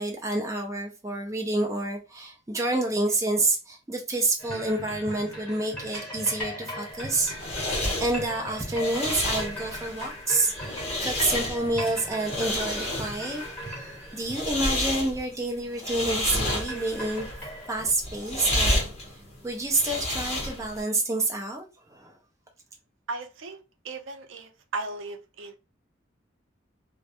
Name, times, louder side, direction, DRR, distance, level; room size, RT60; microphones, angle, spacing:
voice 1, 0.0-10.5 11.0-17.3 17.7-18.8 19.4-21.7 21.9-22.1, right 2 dB, 15° right, 0.4 m, -28 dB
sound 1, 4.4-15.1 16.3-17.9, equal, 10° left, 1.3 m, -38 dB
sound 2, 6.9-20.8, left 1 dB, 35° left, 0.8 m, -31 dB
voice 2, 23.1-25.6, right 3 dB, 80° right, 0.5 m, -36 dB
2.3 x 2.1 x 2.7 m
head